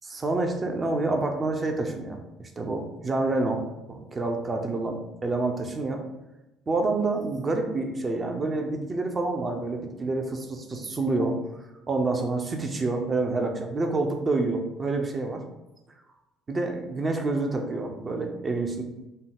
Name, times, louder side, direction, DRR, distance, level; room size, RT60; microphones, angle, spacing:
voice 1, 0.2-3.6 3.9-6.0 6.7-11.4 11.9-15.4 16.5-18.8, right 2 dB, 30° right, 4 dB, 0.6 m, -28 dB
5.4 x 2.3 x 3.5 m, 0.99 s
figure-of-eight pair, 55°, 0 cm